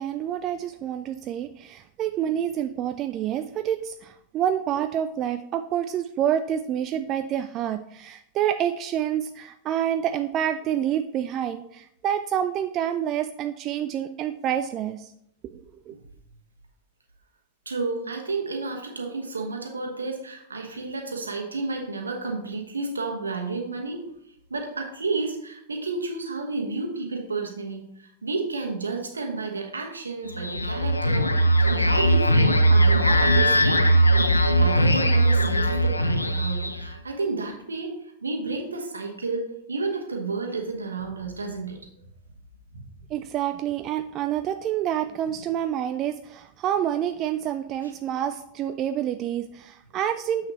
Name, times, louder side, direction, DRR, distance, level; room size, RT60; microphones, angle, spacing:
voice 1, 0.0-15.1 15.5-15.9 43.1-50.5, right 10 dB, 35° right, 9 dB, 0.3 m, -28 dB
voice 2, 17.7-24.1 24.5-31.3 31.6-33.9 34.5-41.8 42.7-42.8 45.2-45.3, right 3 dB, 75° right, 3 dB, 1.2 m, -31 dB
sound 1, 30.3-36.9, right 1 dB, 80° left, 0.5 m, -20 dB
7.2 x 6.1 x 3.0 m, 0.72 s
figure-of-eight pair, 90°, 0 cm